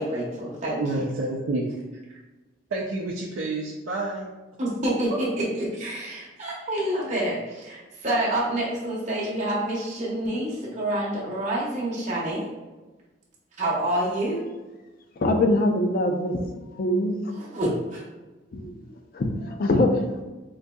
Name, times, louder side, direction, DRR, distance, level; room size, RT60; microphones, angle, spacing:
voice 1, 0.0-1.0 4.6-12.4 13.6-14.4 17.4-18.0, right 1 dB, 40° right, -6 dB, 0.7 m, -27 dB
voice 2, 0.8-1.7 2.7-4.3, right 2 dB, 85° right, -3 dB, 0.4 m, -29 dB
voice 3, 15.2-16.4 16.7-17.1 18.5-18.7 19.1-19.9, left 1 dB, 50° left, 4 dB, 0.4 m, -23 dB
3.9 x 2.6 x 2.2 m, 1.2 s
head